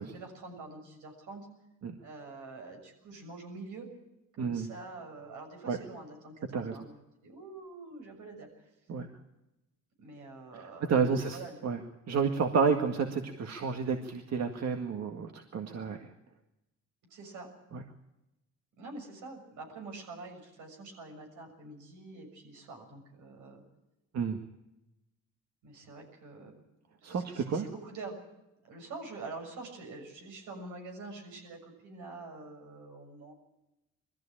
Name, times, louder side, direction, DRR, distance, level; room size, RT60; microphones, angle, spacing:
voice 1, 0.1-1.5 2.0-3.9 4.4-6.9 7.2-8.5 10.0-11.6 17.1-17.5 18.8-23.6 25.6-26.5 27.0-28.3 28.7-33.3, right 3 dB, 85° right, 3 dB, 6.8 m, -46 dB
voice 2, 10.5-11.8 12.1-16.1 17.7-17.8 24.1-24.4 27.0-27.7, right 5 dB, 60° right, 4 dB, 1.9 m, -30 dB
21.5 x 14.5 x 8.8 m, 0.93 s
cardioid pair, 90°, 30 cm